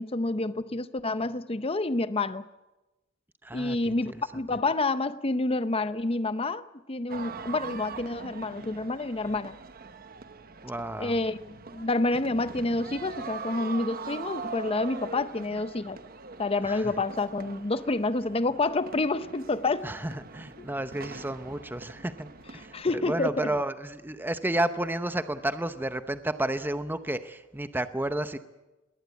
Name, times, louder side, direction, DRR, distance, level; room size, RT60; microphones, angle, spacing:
voice 1, 0.0-2.4 3.5-9.6 11.0-16.0 16.4-19.9 22.7-23.5, left 2 dB, 30° left, 0.7 m, -28 dB
voice 2, 3.4-4.2 10.6-11.2 16.6-16.9 19.8-28.4, right 1 dB, 10° right, 0.8 m, -32 dB
sound 1, 7.1-22.8, right 5 dB, 45° right, 1.0 m, -42 dB
21.5 x 18.0 x 8.2 m
head